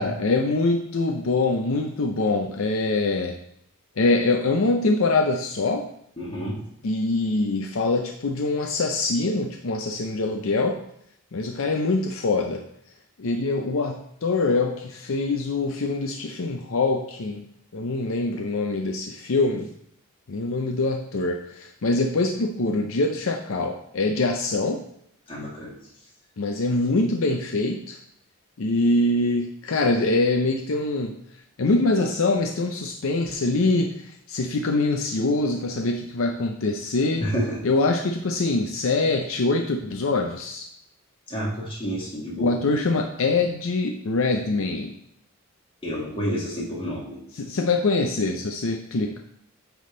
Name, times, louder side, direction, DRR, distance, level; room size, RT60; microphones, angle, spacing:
voice 1, 0.0-3.4 4.0-5.9 6.8-10.8 11.3-12.6 13.2-17.4 17.7-19.7 20.3-24.8 26.4-28.0 28.6-31.2 31.6-37.3 37.6-40.7 42.4-44.9 47.3-49.2, left 3 dB, 65° left, 3 dB, 0.5 m, -24 dB
voice 2, 6.2-6.6 25.3-25.8 37.2-37.6 41.3-42.6 45.8-47.2, equal, 25° left, -4 dB, 1.8 m, -29 dB
9.5 x 3.5 x 3.8 m, 0.73 s
head